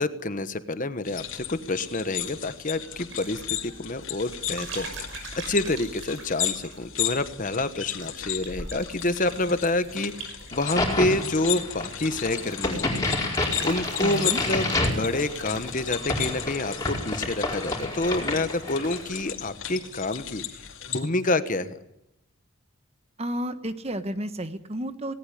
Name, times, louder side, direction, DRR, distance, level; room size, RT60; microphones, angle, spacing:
voice 1, 0.0-4.9 5.4-20.4 20.9-21.8, left 2 dB, 40° left, 12 dB, 1.2 m, -28 dB
sound 1, 1.0-21.0, left 11 dB, 75° left, 2.7 m, -35 dB
sound 2, 2.2-20.5 20.8-21.3, right 3 dB, 65° right, 6.0 m, -45 dB
Crack, 10.5-19.1, left 2 dB, 15° left, 4.8 m, -29 dB
voice 2, 14.0-14.4 23.2-25.1, right 1 dB, 30° right, 11 dB, 1.2 m, -31 dB
19.0 x 18.5 x 9.9 m, 0.84 s
head